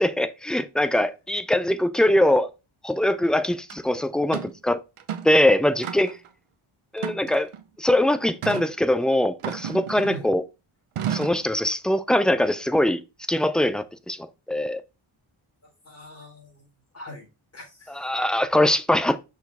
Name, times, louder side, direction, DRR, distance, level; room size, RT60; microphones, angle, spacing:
voice 1, 0.0-2.5 2.8-4.8 5.2-6.2 6.9-7.5 7.8-10.4 11.1-13.0 13.3-14.8 18.0-19.2, left 1 dB, ahead, 0.4 m, -22 dB
sound 1, 3.7-3.8 4.3-4.6 5.0-5.4 5.8-6.3 7.0-7.6 8.4-8.7 9.4-10.3 11.0-11.5, right 9 dB, 85° right, 1.0 m, -32 dB
voice 2, 15.6-16.7 16.9-17.3 17.5-18.2, equal, 30° left, 3.7 m, -43 dB
6.2 x 4.6 x 3.4 m
wide cardioid pair, 105°, 50 cm